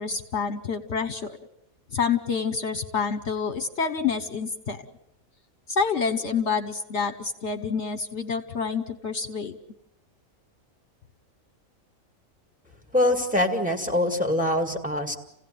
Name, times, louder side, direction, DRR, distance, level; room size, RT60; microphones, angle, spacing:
voice 1, 0.0-1.4 1.9-4.8 5.7-9.6, left 5 dB, 55° left, 9 dB, 1.3 m, -28 dB
voice 2, 12.9-15.2, left 1 dB, 5° right, 5 dB, 2.2 m, -24 dB
29.0 x 16.5 x 9.3 m, 0.81 s
omnidirectional pair, 1.4 m